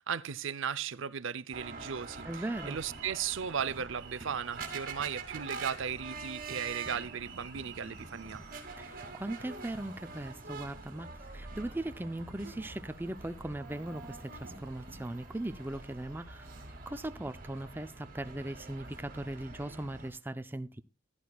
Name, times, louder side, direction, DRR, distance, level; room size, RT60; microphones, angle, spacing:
voice 1, 0.0-8.4, right 7 dB, 65° right, 0.6 m, -36 dB
sound 1, 1.5-20.1, right 4 dB, 40° right, 2.7 m, -45 dB
voice 2, 2.2-2.8 8.8-20.8, right 1 dB, 10° right, 0.5 m, -39 dB
15.5 x 11.5 x 2.3 m
head